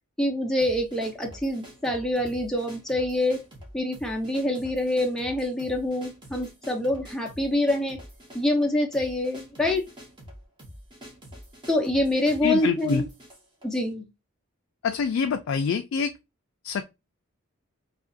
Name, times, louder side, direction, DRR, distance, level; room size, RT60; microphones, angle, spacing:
voice 1, 0.2-3.4 3.7-8.0 8.3-9.8 11.7-13.1 13.6-14.0, left 1 dB, ahead, 0.5 m, -26 dB
sound 1, 0.6-13.9, equal, 20° right, 0.8 m, -46 dB
voice 2, 12.4-13.0 14.8-16.1 16.6-16.8, left 6 dB, 65° left, 0.3 m, -26 dB
2.8 x 2.4 x 2.5 m
head